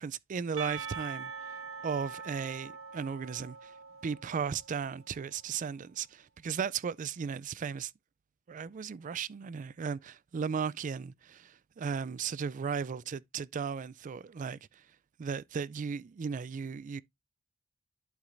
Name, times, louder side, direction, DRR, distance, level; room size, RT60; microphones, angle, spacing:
voice 1, 0.0-1.3 1.8-3.7 4.0-7.9 8.5-14.6 15.2-17.0, right 6 dB, 40° right, 0.3 m, -36 dB
Percussion / Church bell, 0.6-5.1, right 5 dB, 85° right, 1.5 m, -43 dB
11.5 x 4.7 x 2.5 m
head